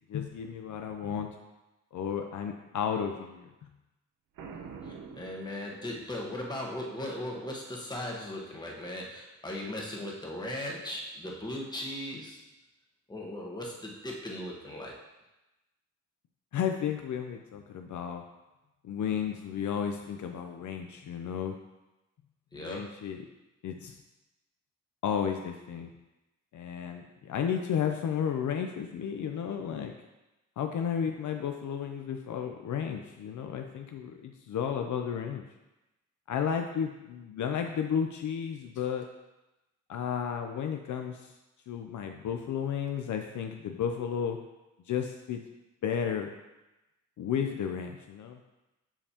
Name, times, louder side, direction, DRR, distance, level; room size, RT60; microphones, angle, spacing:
voice 1, 0.1-1.3 1.9-3.7 16.5-18.2 18.8-21.6 22.5-23.2 23.6-24.0 25.0-25.9 26.5-29.9 30.6-35.4 36.3-39.1 39.9-41.3 41.7-44.4 44.9-45.4 45.8-46.3 47.2-48.4, left 8 dB, 65° left, 4 dB, 0.5 m, -33 dB
Boom, 4.4-6.2, right 5 dB, 80° right, 0.8 m, -45 dB
voice 2, 4.8-12.4 13.1-14.9 22.5-23.0, left 1 dB, 15° left, -2 dB, 1.2 m, -38 dB
7.1 x 5.3 x 2.8 m, 1.0 s
cardioid pair, 110°, 32 cm